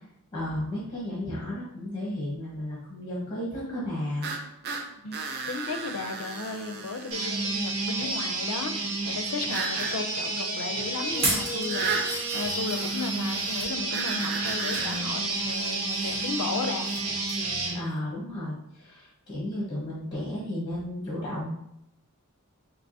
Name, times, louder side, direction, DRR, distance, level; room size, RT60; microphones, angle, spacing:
voice 1, 0.3-4.3 17.7-21.5, left 1 dB, 20° left, -6 dB, 1.1 m, -33 dB
sound 1, 4.2-7.4 9.5-10.0 11.7-12.1 13.9-15.1, right 4 dB, 45° right, 0.5 m, -34 dB
voice 2, 5.0-16.9, left 4 dB, 75° left, 6 dB, 0.5 m, -35 dB
sound 2, 7.1-17.8, right 2 dB, 80° right, 1.0 m, -30 dB
sound 3, 11.1-13.7 14.3-14.9 15.3-17.0 17.3-17.5 17.9-18.0, right 2 dB, 25° right, 1.2 m, -35 dB
4.6 x 2.8 x 2.7 m, 0.80 s
head